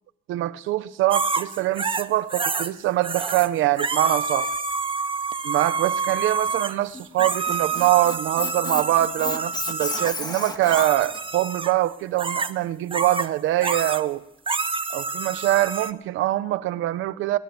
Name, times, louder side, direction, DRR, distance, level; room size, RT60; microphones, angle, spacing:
voice 1, 0.3-4.5 5.4-14.2 14.9-17.4, right 15 dB, 90° right, 14 dB, 0.9 m, -24 dB
sound 1, 1.1-2.7 3.0-3.5 3.8-10.2 10.7-11.7 12.2-12.5 12.9-13.3 13.6-14.0 14.5-15.9, right 4 dB, 25° right, 1.1 m, -28 dB
Squeak, 6.9-11.2, left 2 dB, 20° left, 1.9 m, -32 dB
20.5 x 20.0 x 7.0 m, 0.84 s
cardioid pair, 90°, 20 cm